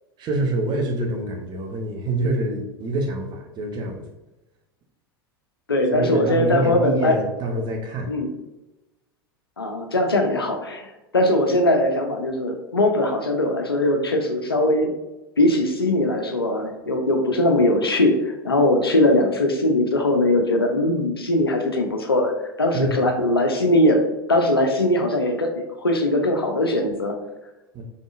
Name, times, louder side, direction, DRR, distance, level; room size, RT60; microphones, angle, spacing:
voice 1, 0.2-4.0 5.9-8.1 22.7-22.9 27.7-27.8, right 2 dB, 35° right, 2 dB, 1.0 m, -26 dB
voice 2, 5.7-7.1 8.1-8.3 9.6-10.9 11.1-14.9 15.4-22.3 22.6-24.0 24.3-27.1, left 1 dB, 90° left, 4 dB, 0.7 m, -20 dB
3.9 x 3.6 x 2.5 m, 1.0 s
figure-of-eight pair, 85°, 12 cm